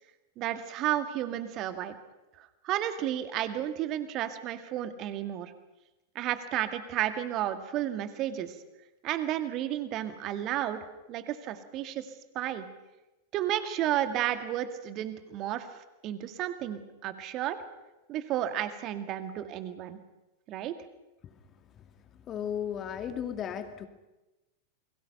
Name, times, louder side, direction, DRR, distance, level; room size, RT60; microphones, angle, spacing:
voice 1, 0.4-1.9 2.4-5.5 6.2-8.5 9.0-10.8 11.1-12.1 12.3-12.7 13.3-15.7 16.0-17.6 18.1-20.0 20.5-20.7, right 12 dB, 35° right, 9 dB, 2.1 m, -32 dB
voice 2, 22.3-23.9, left 8 dB, 30° left, 8 dB, 2.2 m, -35 dB
29.0 x 22.0 x 5.7 m, 1.0 s
figure-of-eight pair, 90°, 0 cm